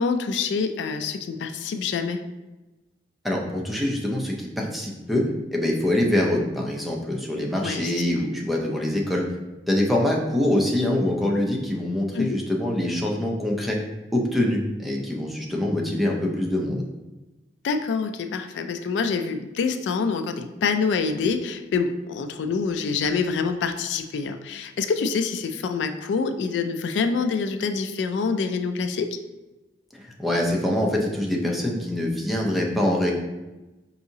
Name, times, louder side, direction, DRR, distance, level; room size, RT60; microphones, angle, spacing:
voice 1, 0.0-2.2 7.6-7.9 12.1-12.4 17.6-29.2, left 5 dB, 80° left, 8 dB, 0.3 m, -26 dB
voice 2, 3.2-5.2 5.5-9.2 9.7-13.8 14.1-16.8 29.9-33.1, left 1 dB, ahead, -2 dB, 0.5 m, -24 dB
4.7 x 2.7 x 2.7 m, 1.1 s
head